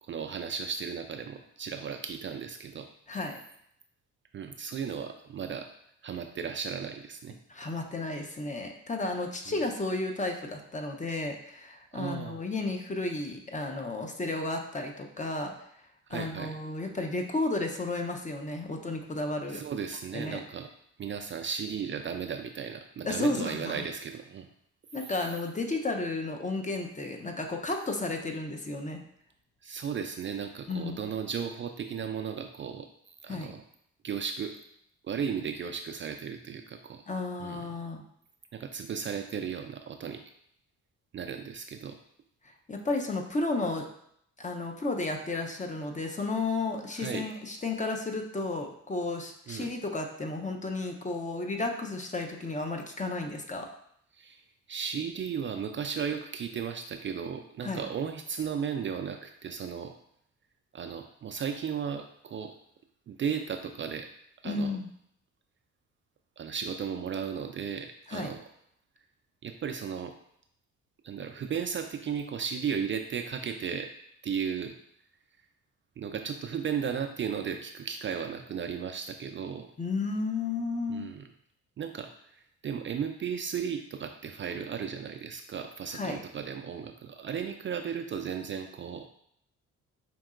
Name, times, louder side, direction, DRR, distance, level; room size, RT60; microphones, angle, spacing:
voice 1, 0.0-2.9 4.3-5.7 6.0-7.3 9.5-9.6 11.9-12.4 16.1-16.6 19.5-20.7 21.0-24.5 25.0-25.1 29.6-33.6 34.0-34.6 35.0-37.0 37.4-37.7 38.5-40.2 41.1-42.0 47.0-47.3 49.5-49.7 54.1-54.4 54.7-59.9 60.7-62.5 63.1-64.1 64.4-64.7 66.4-68.4 69.4-70.1 71.0-73.9 74.2-74.8 76.0-79.7 80.9-81.2 81.8-89.1, right 7 dB, 40° right, 5 dB, 0.4 m, -35 dB
voice 2, 7.5-15.5 16.1-19.6 20.1-20.4 23.0-23.8 24.9-29.0 30.7-31.0 33.3-33.5 37.1-38.0 42.7-43.9 44.4-53.7 57.6-57.8 64.4-64.9 68.1-68.3 79.8-81.1 85.9-86.2, left 2 dB, 25° left, 3 dB, 0.7 m, -33 dB
5.2 x 2.8 x 2.4 m, 0.70 s
supercardioid pair, 60°, 31 cm